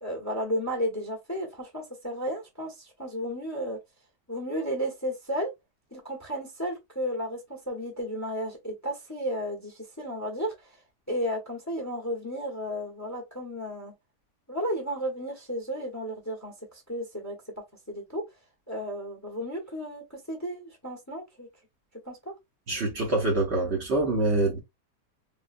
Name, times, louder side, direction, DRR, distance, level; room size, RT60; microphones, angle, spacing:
voice 1, 0.0-3.8 4.3-5.5 5.9-10.8 11.1-13.9 14.5-17.4 17.9-18.2 18.7-21.5 22.0-22.3, equal, 15° left, 0.7 m, -33 dB
voice 2, 22.7-24.6, right 2 dB, 50° right, 1.0 m, -25 dB
3.6 x 2.2 x 2.4 m
omnidirectional pair, 1.6 m